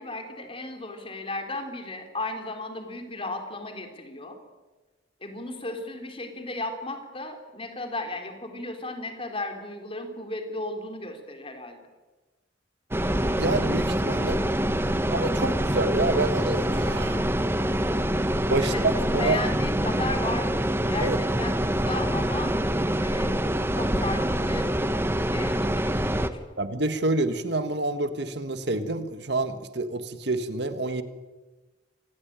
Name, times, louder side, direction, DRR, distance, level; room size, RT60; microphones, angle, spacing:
voice 1, 0.0-4.4 5.2-11.8 18.6-22.5 23.0-23.4 23.7-24.7 25.2-26.4, left 2 dB, 30° left, 5 dB, 3.9 m, -35 dB
sound 1, 12.9-26.3, right 1 dB, 15° right, 1.1 m, -25 dB
voice 2, 13.4-14.4 15.1-17.3 18.5-19.4 21.0-21.2 26.6-31.0, right 2 dB, 65° right, 10 dB, 1.7 m, -28 dB
25.5 x 20.0 x 9.0 m, 1.2 s
head